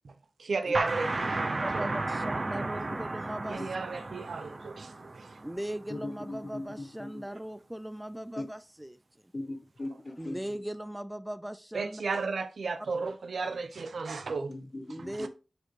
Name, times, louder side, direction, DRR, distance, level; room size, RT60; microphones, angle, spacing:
voice 1, 0.0-1.9 2.5-2.9 3.5-5.4 7.3-7.4 11.7-14.5 15.2-15.3, right 4 dB, 90° right, 0.6 m, -34 dB
sound 1, 0.7-6.2, right 2 dB, 50° right, 0.8 m, -34 dB
voice 2, 1.3-3.6 5.4-9.0 10.2-12.0 14.9-15.3, right 1 dB, 10° right, 0.5 m, -39 dB
voice 3, 5.9-7.2 8.4-8.5 9.3-10.5 14.5-15.3, left 2 dB, 40° left, 1.1 m, -39 dB
7.8 x 4.4 x 3.1 m
wide cardioid pair, 55°, 0 cm